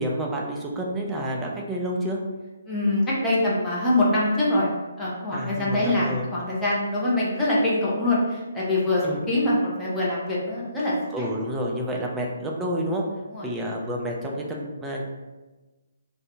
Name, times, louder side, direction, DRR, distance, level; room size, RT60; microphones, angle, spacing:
voice 1, 0.0-2.2 5.3-6.2 9.0-9.2 11.1-13.0 13.4-15.0, equal, 10° right, -2 dB, 0.5 m, -29 dB
voice 2, 2.7-4.7 5.0-11.3 13.3-13.5, left 1 dB, 10° left, -7 dB, 0.9 m, -24 dB
2.6 x 2.6 x 3.5 m, 1.2 s
figure-of-eight pair, 145°, 0 cm